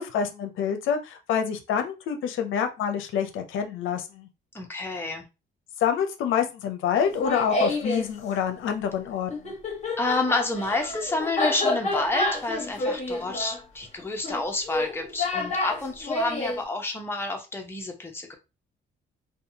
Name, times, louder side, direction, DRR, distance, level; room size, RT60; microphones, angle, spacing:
voice 1, 0.0-4.3 5.8-9.5, left 7 dB, 80° left, 6 dB, 0.5 m, -27 dB
voice 2, 4.5-5.3 10.0-18.4, left 2 dB, 10° left, 2 dB, 0.7 m, -29 dB
Laughter, 7.0-8.1 9.3-16.6, left 2 dB, 35° left, 1.2 m, -29 dB
2.7 x 2.2 x 2.7 m, 0.27 s
cardioid pair, 90°, 20 cm